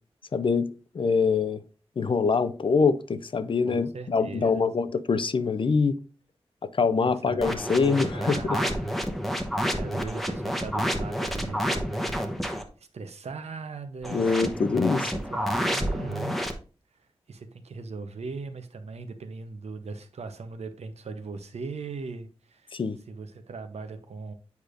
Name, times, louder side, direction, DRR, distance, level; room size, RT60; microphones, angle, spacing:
voice 1, 0.3-1.6 2.0-6.0 6.7-8.6 14.1-15.1 22.7-23.0, left 5 dB, 55° left, 0.4 m, -24 dB
voice 2, 3.7-4.7 7.0-8.9 9.7-14.7 15.0-16.4 17.3-22.8 23.1-24.3, right 4 dB, 80° right, 0.8 m, -39 dB
sound 1, 7.4-12.7 14.0-16.5, equal, ahead, 0.8 m, -29 dB
8.1 x 5.0 x 2.5 m
wide cardioid pair, 85°, 11 cm